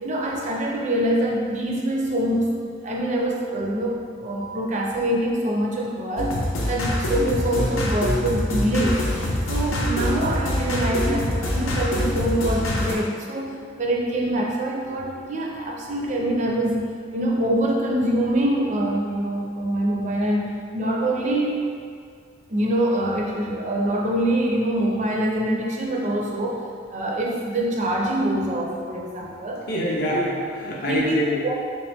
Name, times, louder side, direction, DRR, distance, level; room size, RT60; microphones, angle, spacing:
voice 1, 0.0-2.5 2.8-6.4 6.7-9.1 9.5-21.7 22.5-26.6 26.9-29.6 30.8-31.2 31.4-31.5, right 1 dB, 35° right, -1 dB, 0.4 m, -24 dB
sound 1, 6.2-12.9, left 1 dB, 90° left, 0.6 m, -25 dB
voice 2, 29.7-31.4, equal, 50° left, -5 dB, 0.5 m, -25 dB
3.3 x 3.0 x 3.3 m, 2.1 s
head